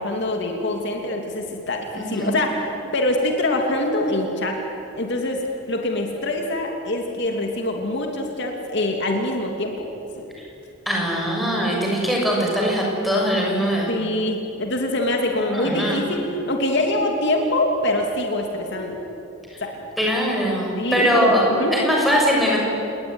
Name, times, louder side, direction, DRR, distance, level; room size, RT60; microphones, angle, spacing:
voice 1, 0.0-4.6 5.0-9.9 10.2-10.3 13.9-19.0 19.6-19.7 20.8-21.7, left 1 dB, 55° left, 2 dB, 2.8 m, -24 dB
voice 2, 1.9-2.3 10.8-13.9 15.5-16.0 19.5-19.6 20.0-21.4 21.7-22.6, equal, ahead, -2 dB, 6.7 m, -21 dB
29.5 x 20.0 x 9.7 m, 2.9 s
head